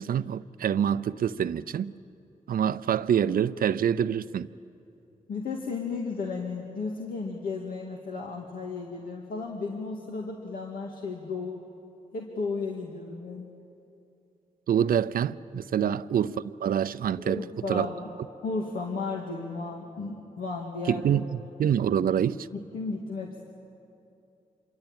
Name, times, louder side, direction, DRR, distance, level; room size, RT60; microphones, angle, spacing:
voice 1, 0.0-1.9 2.5-4.5 14.7-17.9 20.9-22.5, right 9 dB, 85° right, 0.6 m, -26 dB
voice 2, 5.3-11.6 12.1-13.5 15.8-15.9 17.2-18.1 18.4-21.0 22.5-23.4, left 4 dB, 80° left, 2.2 m, -34 dB
27.0 x 23.0 x 8.9 m
cardioid pair, 55°, 15 cm